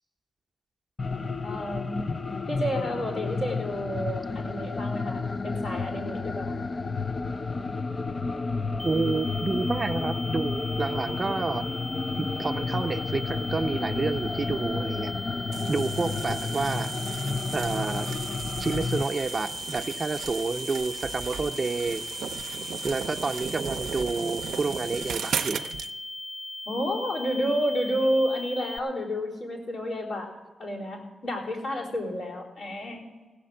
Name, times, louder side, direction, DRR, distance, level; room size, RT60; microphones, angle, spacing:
sound 1, 1.0-19.0, left 4 dB, 45° left, 0.4 m, -31 dB
voice 1, 1.4-2.1 2.5-6.6 26.7-30.3 30.6-33.0, equal, 80° left, -5 dB, 3.8 m, -30 dB
sound 2, 8.8-28.8, left 2 dB, 20° left, 0.8 m, -38 dB
voice 2, 8.8-11.7 12.2-15.1 15.6-16.9 17.5-18.1 18.6-22.1 22.8-25.6, right 4 dB, 40° right, 6 dB, 0.6 m, -29 dB
sound 3, 15.5-25.9, right 7 dB, 90° right, 0.4 m, -36 dB
16.5 x 6.4 x 7.6 m, 1.3 s
cardioid pair, 70°, 0 cm